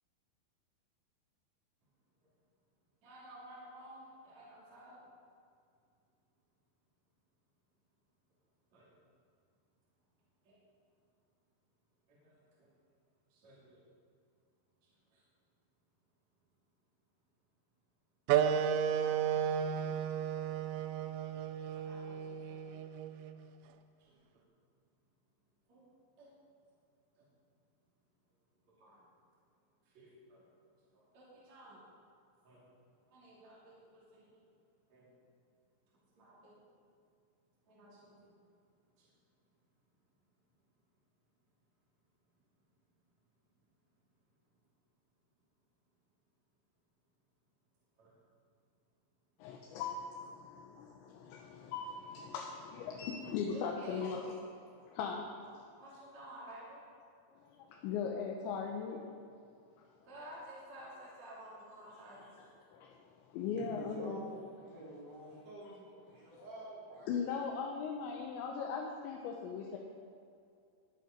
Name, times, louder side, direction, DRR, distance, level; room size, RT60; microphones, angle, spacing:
voice 1, 3.0-5.0 8.7-8.9 10.5-10.6 12.1-12.7 13.3-13.8 15.1-15.2 21.7-23.0 24.0-24.4 25.7-25.8 26.2-26.3 27.2-27.3 28.8-29.0 29.9-30.4 30.9-31.8 32.4-32.6 33.1-34.4 34.9-35.1 36.2-36.6 37.7-38.2 39.0-39.1 48.0-48.1 53.5-54.1 55.8-56.8 60.0-62.5, right 1 dB, 40° right, -7 dB, 3.7 m, -53 dB
sound 1, 18.3-23.4, right 8 dB, 85° right, 2.8 m, -33 dB
voice 2, 49.4-54.4 54.8-55.2 57.4-59.0 62.4-62.5 62.7-64.2 66.1-66.5 67.1-69.8, left 6 dB, 80° left, 0 dB, 3.2 m, -39 dB
voice 3, 63.5-67.1, right 1 dB, 60° right, -6 dB, 5.5 m, -48 dB
21.5 x 8.4 x 5.2 m, 2.4 s
omnidirectional pair, 5.4 m